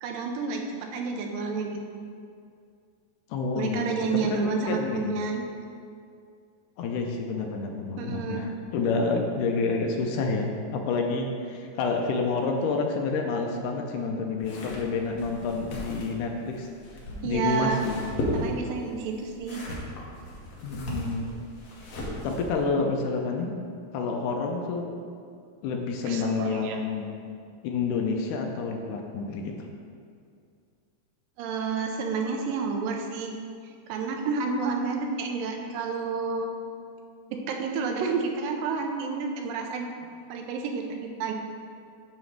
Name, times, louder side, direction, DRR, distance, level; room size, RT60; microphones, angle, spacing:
voice 1, 0.0-2.0 3.5-5.5 8.0-8.5 17.2-17.8 18.3-19.6 26.0-26.8 31.4-33.4 33.9-36.5 37.3-39.9 40.3-41.3, right 4 dB, 85° right, 2 dB, 2.4 m, -30 dB
voice 2, 3.3-3.9 4.1-5.2 6.8-16.7 17.2-18.0 20.6-21.3 22.2-23.5 23.9-24.9 25.6-27.2 27.6-29.5, left 4 dB, 80° left, 2 dB, 2.0 m, -28 dB
sound 1, 14.4-22.6, equal, 60° left, 2.2 m, -36 dB
9.1 x 3.1 x 6.4 m, 2.3 s
omnidirectional pair, 3.9 m